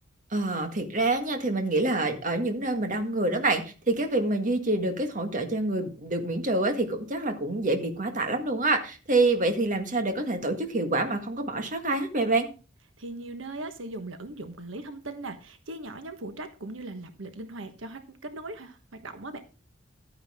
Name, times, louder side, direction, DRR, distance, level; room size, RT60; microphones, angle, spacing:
voice 1, 0.3-12.5, right 2 dB, 45° right, 6 dB, 1.8 m, -27 dB
voice 2, 13.0-19.4, right 2 dB, 90° right, 8 dB, 1.3 m, -39 dB
12.0 x 9.7 x 3.6 m, 0.33 s
head